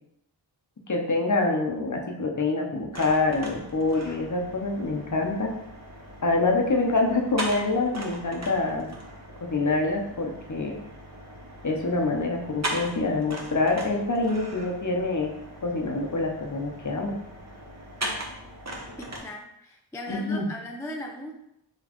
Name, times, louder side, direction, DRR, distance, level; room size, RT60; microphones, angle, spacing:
voice 1, 0.9-5.5 6.2-8.9 9.4-10.8 11.6-15.3 15.6-17.2 20.1-20.5, left 3 dB, 40° left, 1 dB, 0.8 m, -26 dB
sound 1, 2.9-19.2, right 1 dB, 35° right, 0.9 m, -39 dB
voice 2, 19.0-21.3, left 1 dB, 5° left, 1 dB, 0.3 m, -38 dB
4.1 x 3.1 x 3.0 m, 0.80 s
wide cardioid pair, 50°, 48 cm